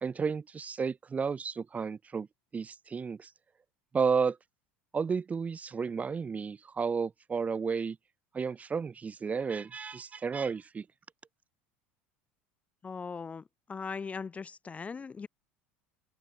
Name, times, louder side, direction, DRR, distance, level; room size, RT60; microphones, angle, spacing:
voice 1, 0.0-2.3 2.5-3.3 3.9-4.4 4.9-8.0 8.3-10.9, right 5 dB, 25° right, 0.9 m, -32 dB
voice 2, 12.8-13.4 13.7-15.3, left 5 dB, 25° left, 0.7 m, -39 dB
open air
supercardioid pair, 95°, 6 cm